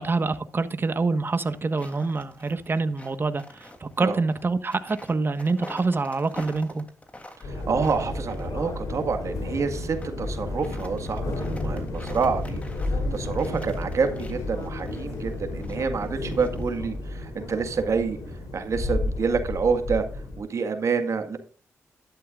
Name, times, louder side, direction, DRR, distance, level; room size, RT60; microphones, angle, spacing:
voice 1, 0.0-6.8, right 3 dB, 40° right, 11 dB, 1.4 m, -26 dB
sound 1, 1.4-9.0 9.6-10.1 10.4-17.0, left 1 dB, 25° left, 3.0 m, -47 dB
sound 2, 7.4-20.4, left 2 dB, 75° left, 3.6 m, -32 dB
voice 2, 7.4-18.2 18.5-21.4, right 5 dB, 60° right, 7 dB, 1.8 m, -28 dB
12.0 x 11.5 x 2.5 m, 0.40 s
cardioid pair, 60°, 6 cm